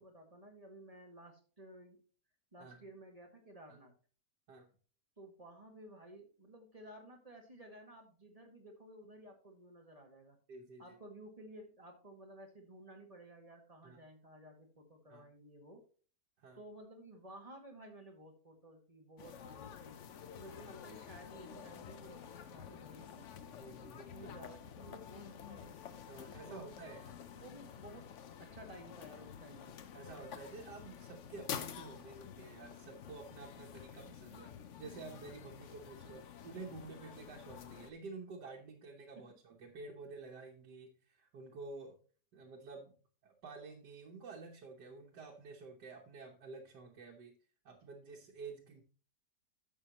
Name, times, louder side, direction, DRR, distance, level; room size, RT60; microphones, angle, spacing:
voice 1, 0.0-2.0 2.5-3.9 5.2-10.4 10.8-15.8 16.5-19.9 20.4-23.4 24.1-25.8 26.5-26.7 27.3-28.0 28.5-29.8 36.0-36.1, right 1 dB, 20° right, 2 dB, 1.8 m, -54 dB
voice 2, 10.5-11.0 13.8-14.0 15.1-15.3 16.4-16.6 19.5-19.6 23.6-24.3 26.1-27.2 29.9-42.0 42.3-43.0 43.2-47.3 47.6-48.8, right 3 dB, 80° right, -1 dB, 1.7 m, -50 dB
sound 1, 19.2-37.9, left 8 dB, 55° left, 0.9 m, -50 dB
11.0 x 7.1 x 2.9 m, 0.40 s
omnidirectional pair, 1.8 m